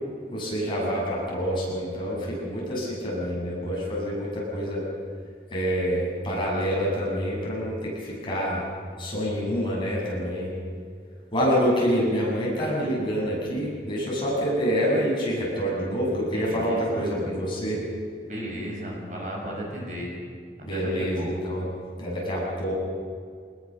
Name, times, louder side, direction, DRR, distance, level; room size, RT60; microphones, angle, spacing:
voice 1, 0.3-4.9 5.5-8.6 9.0-10.5 11.3-17.8 20.6-21.6 22.0-22.7, equal, 30° left, -4 dB, 7.6 m, -27 dB
voice 2, 16.3-17.3 18.2-20.1 20.7-21.3, equal, 45° right, -2 dB, 5.9 m, -34 dB
24.5 x 21.0 x 6.6 m, 2.2 s
head